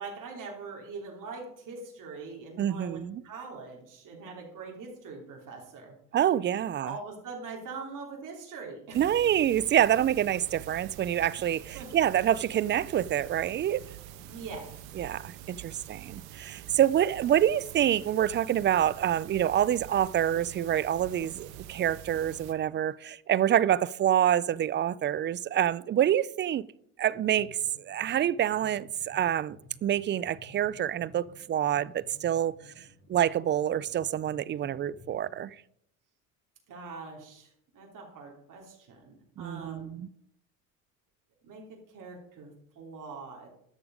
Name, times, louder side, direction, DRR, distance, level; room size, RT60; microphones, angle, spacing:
voice 1, 0.0-6.0 6.6-9.3 10.0-10.2 11.7-11.9 14.2-14.7 36.7-39.9 41.4-43.5, right 4 dB, 50° right, 3.2 m, -43 dB
voice 2, 2.6-3.2 6.1-6.9 8.9-13.8 15.0-26.7 27.0-29.6 29.8-32.6 33.1-35.5 39.4-40.1, right 10 dB, 30° right, 0.4 m, -27 dB
sound 1, 8.9-22.5, right 11 dB, 85° right, 1.1 m, -46 dB
sound 2, 27.1-35.4, left 2 dB, 30° left, 4.4 m, -55 dB
11.0 x 6.9 x 5.1 m
supercardioid pair, 80°, 40 cm